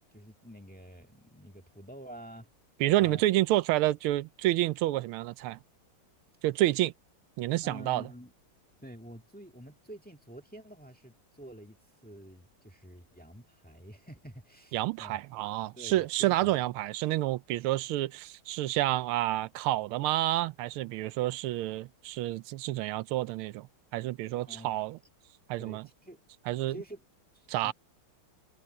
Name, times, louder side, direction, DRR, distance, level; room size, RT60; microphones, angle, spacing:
voice 1, 0.1-2.5 3.0-3.2 7.6-8.3 8.8-15.2 15.8-16.6 24.3-24.7 25.6-26.2 26.7-27.0 27.3-27.7, right 1 dB, 5° left, 1.7 m, -48 dB
voice 2, 2.8-5.6 6.4-6.9 7.4-8.1 14.7-23.7 23.9-25.0 25.5-25.9 26.5-26.8 27.5-27.7, right 15 dB, 85° right, 1.5 m, -29 dB
omnidirectional pair, 2.3 m